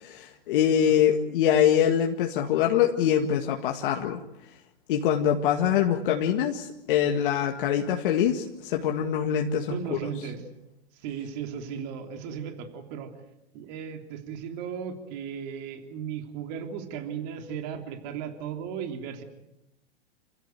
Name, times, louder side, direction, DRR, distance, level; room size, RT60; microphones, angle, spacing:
voice 1, 0.0-4.2 4.9-9.7, left 9 dB, 55° left, 2 dB, 2.0 m, -24 dB
voice 2, 9.7-10.4 10.9-13.1 13.5-19.2, right 7 dB, 45° right, 5 dB, 3.3 m, -36 dB
27.5 x 16.0 x 9.3 m, 0.89 s
hypercardioid pair, 135°, 31 cm